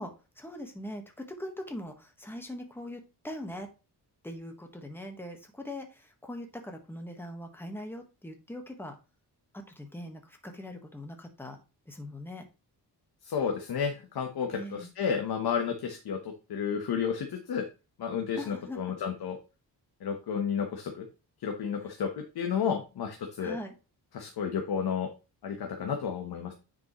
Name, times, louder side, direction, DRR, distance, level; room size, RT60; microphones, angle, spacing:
voice 1, 0.0-3.7 4.2-9.0 9.5-11.6 11.9-12.5 14.5-14.9 18.4-18.8 23.4-23.7, left 1 dB, 5° left, 4 dB, 1.3 m, -41 dB
voice 2, 13.2-17.6 18.0-19.4 20.0-21.0 21.4-23.6 24.1-25.1 25.4-26.5, left 7 dB, 65° left, 4 dB, 1.1 m, -32 dB
9.5 x 5.2 x 3.0 m, 0.30 s
wide cardioid pair, 140°, 41 cm